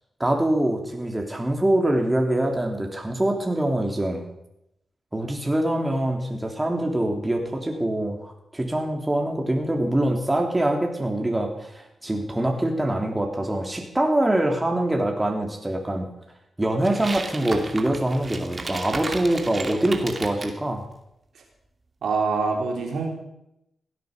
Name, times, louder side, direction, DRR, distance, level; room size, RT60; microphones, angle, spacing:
voice 1, 0.2-4.2 5.1-16.1 16.6-20.8, right 1 dB, 20° right, 2 dB, 3.4 m, -24 dB
sound 1, 16.8-20.6, right 3 dB, 40° right, 2.5 m, -34 dB
voice 2, 22.0-23.1, right 4 dB, 75° right, 1 dB, 3.7 m, -25 dB
17.0 x 9.2 x 6.8 m, 0.83 s
supercardioid pair, 50°, 0 cm